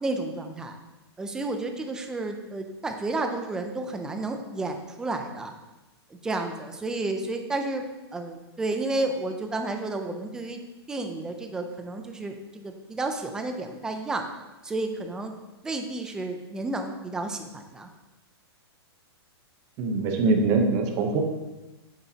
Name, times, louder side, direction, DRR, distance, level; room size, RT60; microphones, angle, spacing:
voice 1, 0.0-0.8 1.2-5.5 6.1-7.9 8.1-10.6 10.9-14.2 14.6-15.3 15.6-17.9, right 2 dB, 5° right, 5 dB, 0.4 m, -31 dB
voice 2, 19.8-21.2, right 3 dB, 25° right, 4 dB, 0.8 m, -23 dB
8.7 x 8.3 x 2.8 m, 1.1 s
hypercardioid pair, 170°, 14 cm